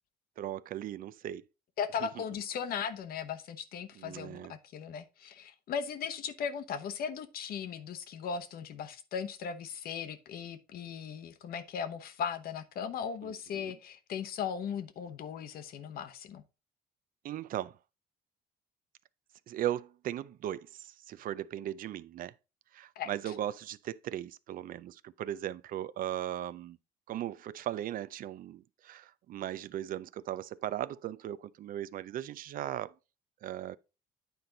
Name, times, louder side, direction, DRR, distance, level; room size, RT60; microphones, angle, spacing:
voice 1, 0.4-1.4 2.0-2.1 4.0-4.5 13.2-13.7 17.2-17.8 19.5-22.3 22.7-26.8 27.1-32.9 33.4-33.8, right 12 dB, 55° right, 0.4 m, -38 dB
voice 2, 1.8-16.4 23.0-23.3, left 7 dB, 65° left, 0.9 m, -38 dB
9.4 x 4.4 x 3.9 m
cardioid pair, 110°, 17 cm